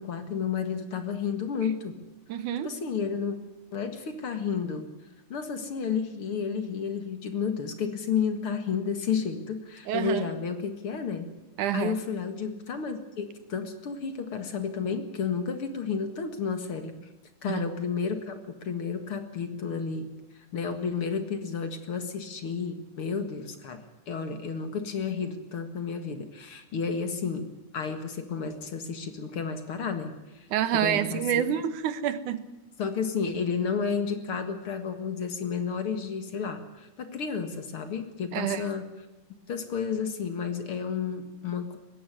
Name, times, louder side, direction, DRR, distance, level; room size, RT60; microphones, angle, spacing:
voice 1, 0.0-2.0 2.6-3.4 3.7-4.9 5.3-11.3 11.7-16.9 17.4-20.1 20.5-31.5 32.8-38.9 39.5-41.8, left 6 dB, 50° left, 9 dB, 2.3 m, -31 dB
voice 2, 2.3-2.7 9.9-10.3 11.6-12.0 17.5-17.7 30.5-32.4 38.3-38.6, right 10 dB, 85° right, 14 dB, 2.7 m, -27 dB
20.0 x 16.0 x 9.7 m, 1.1 s
omnidirectional pair, 3.5 m